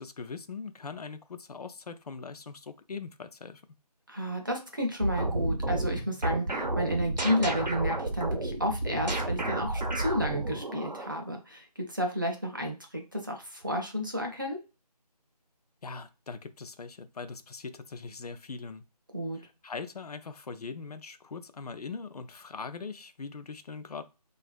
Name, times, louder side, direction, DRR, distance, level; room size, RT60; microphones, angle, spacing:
voice 1, 0.0-3.6 15.8-18.8 19.4-24.0, left 4 dB, 65° left, 10 dB, 0.4 m, -41 dB
voice 2, 4.1-14.6 19.1-19.4, equal, 30° right, 1 dB, 0.5 m, -31 dB
sound 1, 5.0-11.2, right 1 dB, 90° right, 0.7 m, -31 dB
2.7 x 2.3 x 2.2 m, 0.30 s
figure-of-eight pair, 165°, 21 cm